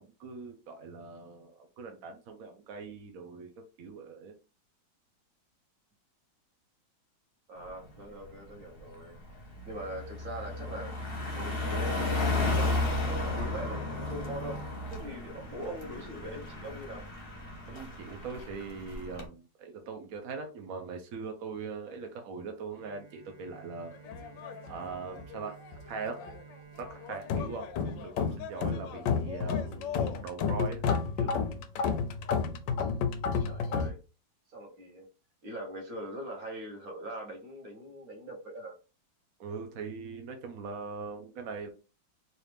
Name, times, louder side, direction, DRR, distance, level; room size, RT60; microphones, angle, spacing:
voice 1, 0.0-4.3 17.7-24.0 24.7-25.6 25.8-26.2 26.8-30.8 31.2-31.4 39.4-41.7, right 5 dB, 70° right, 0.8 m, -41 dB
voice 2, 7.5-9.1 9.6-11.0 11.3-17.0 33.4-34.0 34.5-35.1 35.4-38.8, right 1 dB, 50° right, 1.6 m, -42 dB
Car passing by, 7.7-7.9 8.3-19.3, left 2 dB, 45° left, 0.8 m, -34 dB
Bowed string instrument, 22.7-28.7, right 6 dB, 85° right, 2.1 m, -54 dB
sound 1, 24.1-25.4 25.6-26.4 26.8-33.9, left 6 dB, 75° left, 1.1 m, -31 dB
4.0 x 2.5 x 3.3 m
omnidirectional pair, 2.2 m